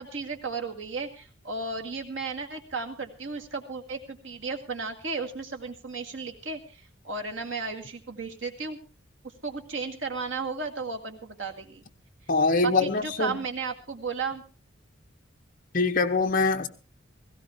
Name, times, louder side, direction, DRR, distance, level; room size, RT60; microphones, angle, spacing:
voice 1, 0.0-8.8 9.4-11.8 12.6-14.4, right 4 dB, 70° right, 2.1 m, -34 dB
voice 2, 12.3-13.4 15.7-16.7, left 3 dB, 45° left, 1.1 m, -23 dB
17.5 x 16.0 x 3.6 m
head